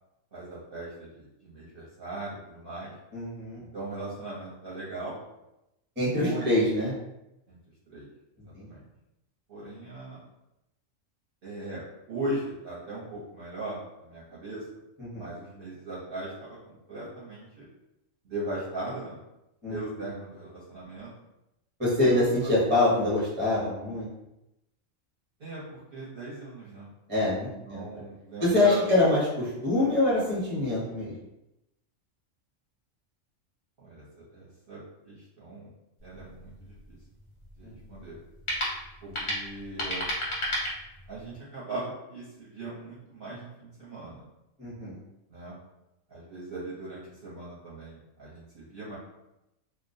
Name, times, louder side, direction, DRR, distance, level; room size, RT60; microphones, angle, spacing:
voice 1, 0.3-3.0 3.7-5.2 6.2-6.6 7.5-7.6 7.9-8.1 8.6-8.9 9.5-10.2 11.4-14.8 15.1-17.7 18.2-19.2 19.7-21.1 22.0-22.5 25.4-26.9 27.7-28.9 33.8-34.8 35.0-35.7 36.0-37.0 37.6-38.2 39.0-40.1 41.1-44.2 45.3-45.6 46.1-49.0, right 2 dB, 50° right, -8 dB, 0.8 m, -39 dB
voice 2, 3.1-3.6 6.0-6.9 8.5-8.7 15.0-15.2 19.6-19.8 21.8-24.1 27.1-27.8 28.4-31.1 37.6-37.7 39.2-39.3 44.6-45.0, left 2 dB, 10° right, -8 dB, 0.7 m, -25 dB
sound 1, 36.0-41.4, equal, 50° left, 0.3 m, -35 dB
2.3 x 2.0 x 2.6 m, 0.90 s
omnidirectional pair, 1.3 m